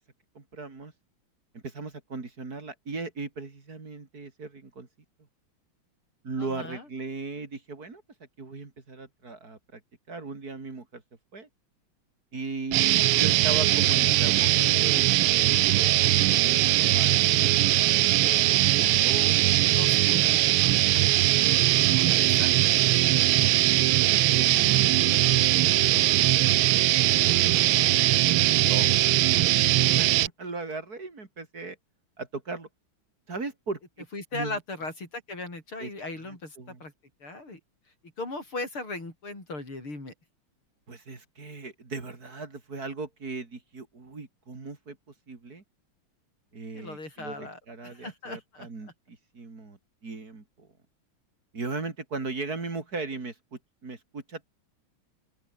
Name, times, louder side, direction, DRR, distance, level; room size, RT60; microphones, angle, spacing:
voice 1, 0.4-0.9 1.5-4.9 6.2-8.0 8.4-9.8 10.1-11.0 11.3-11.5 12.3-19.7 23.6-26.0 27.4-28.2 28.5-29.1 29.7-31.8 32.2-32.7 33.3-33.8 34.3-34.6 35.8-35.9 36.2-36.8 40.9-45.0 45.3-45.6 46.5-50.7 51.5-54.5, right 3 dB, 45° right, 3.6 m, -38 dB
voice 2, 6.4-6.9 19.6-23.0 34.1-36.9 37.2-37.6 38.2-40.1 46.7-48.7, left 2 dB, 90° left, 8.6 m, -38 dB
sound 1, 12.7-30.3, right 15 dB, 85° right, 1.6 m, -21 dB
open air
omnidirectional pair, 2.3 m